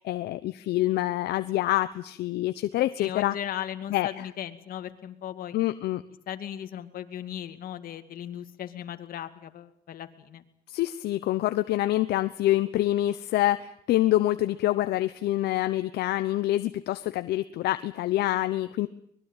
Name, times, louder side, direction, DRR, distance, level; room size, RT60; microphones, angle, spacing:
voice 1, 0.0-3.4 3.9-4.3 5.5-6.0 10.7-18.9, left 15 dB, 75° left, 11 dB, 0.9 m, -26 dB
voice 2, 3.0-5.6 6.3-10.4, left 10 dB, 60° left, 9 dB, 2.3 m, -37 dB
24.5 x 21.0 x 9.0 m, 0.68 s
cardioid pair, 110°, 17 cm